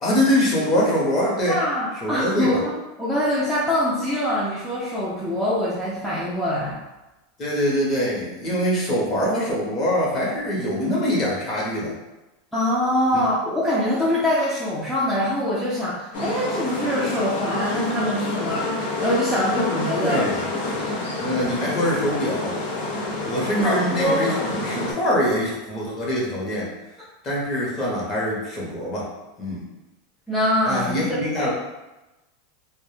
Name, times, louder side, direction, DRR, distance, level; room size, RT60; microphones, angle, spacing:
voice 1, 0.0-1.5 2.0-2.6 7.4-11.9 13.1-13.2 20.0-20.4 21.2-22.6 23.2-24.3 24.6-26.7 27.2-29.1 29.4-29.6 30.6-31.5, equal, 30° left, -4 dB, 0.8 m, -23 dB
voice 2, 1.5-6.8 12.5-20.4 23.6-24.4 30.3-31.5, left 1 dB, 5° left, -9 dB, 0.4 m, -24 dB
sound 1, 16.1-24.9, left 2 dB, 65° left, 0.6 m, -28 dB
2.1 x 2.0 x 3.1 m, 1.0 s
supercardioid pair, 150°, 0 cm